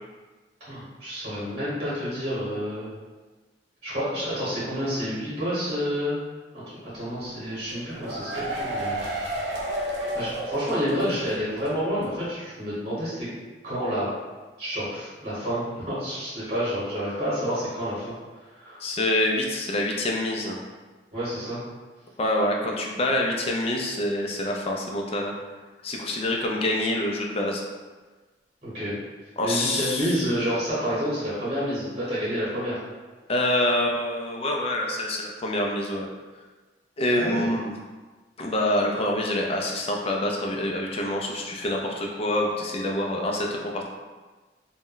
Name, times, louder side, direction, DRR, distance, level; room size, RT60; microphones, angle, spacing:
voice 1, 0.7-2.9 3.8-6.2 6.5-6.6 6.9-9.0 10.1-13.3 13.6-14.1 14.6-18.1 18.5-18.8 21.1-21.6 28.6-29.0 29.4-32.8 37.1-37.5, equal, 40° right, -10 dB, 1.0 m, -29 dB
sound 1, 7.7-11.3 11.6-11.7 12.0-12.1, right 1 dB, 70° right, 0.5 m, -31 dB
voice 2, 18.8-20.6 22.2-25.3 25.8-27.6 29.4-30.2 33.3-36.1 37.0-37.7 38.4-43.5 43.7-43.9, left 1 dB, 35° left, 0 dB, 0.4 m, -26 dB
2.1 x 2.1 x 3.8 m, 1.3 s
head